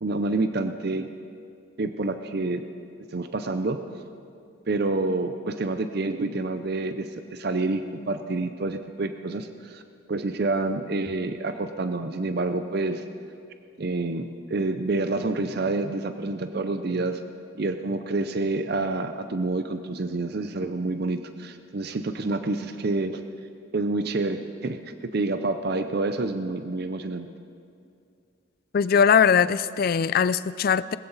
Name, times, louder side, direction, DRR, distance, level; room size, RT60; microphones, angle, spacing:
voice 1, 0.0-1.1 1.8-2.6 3.1-3.8 4.7-9.8 10.1-13.1 13.8-17.2 17.6-23.2 23.7-27.3, right 2 dB, 50° right, 9 dB, 0.6 m, -28 dB
voice 2, 28.7-31.0, left 7 dB, 45° left, 17 dB, 0.3 m, -20 dB
20.0 x 15.0 x 4.1 m, 2.4 s
head